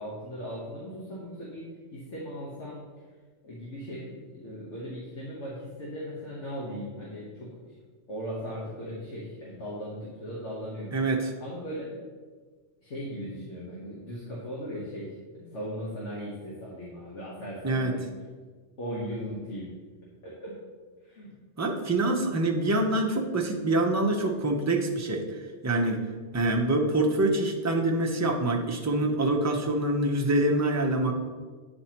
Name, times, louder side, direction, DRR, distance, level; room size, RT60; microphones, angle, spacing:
voice 1, 0.0-2.8 3.4-7.7 8.1-11.0 11.4-12.0 12.8-18.1 18.8-19.7 20.2-20.6 21.0-21.3, equal, 75° left, -6 dB, 1.5 m, -38 dB
voice 2, 10.9-11.3 17.6-17.9 21.6-25.4 25.6-26.0 26.3-31.1, right 2 dB, 20° right, 1 dB, 0.5 m, -25 dB
9.4 x 4.3 x 2.9 m, 1.5 s
omnidirectional pair, 1.2 m